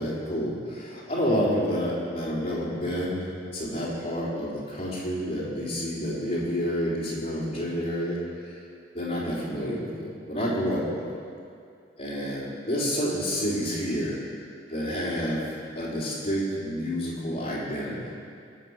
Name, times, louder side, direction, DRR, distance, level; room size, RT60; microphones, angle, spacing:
voice 1, 0.0-8.6 8.9-11.1 12.0-14.2 14.7-18.0, equal, 35° left, -7 dB, 3.8 m, -29 dB
21.5 x 7.4 x 6.5 m, 2.4 s
head